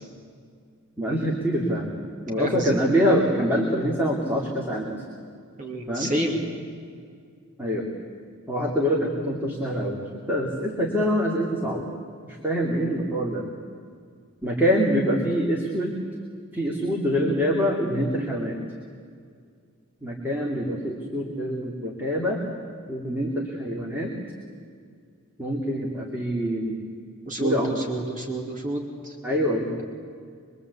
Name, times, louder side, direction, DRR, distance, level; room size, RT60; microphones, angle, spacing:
voice 1, 1.0-1.9 2.3-5.0 5.9-6.1 7.6-7.9 8.5-10.0 10.3-11.9 12.4-13.4 14.4-16.0 16.5-18.6 20.0-22.4 22.9-24.1 25.4-26.8 27.4-27.8 29.2-29.7, equal, 10° right, -2 dB, 2.7 m, -25 dB
voice 2, 2.4-2.8 5.6-6.4 27.3-29.1, right 1 dB, 35° right, 0 dB, 2.9 m, -29 dB
24.5 x 23.5 x 8.3 m, 2.2 s
head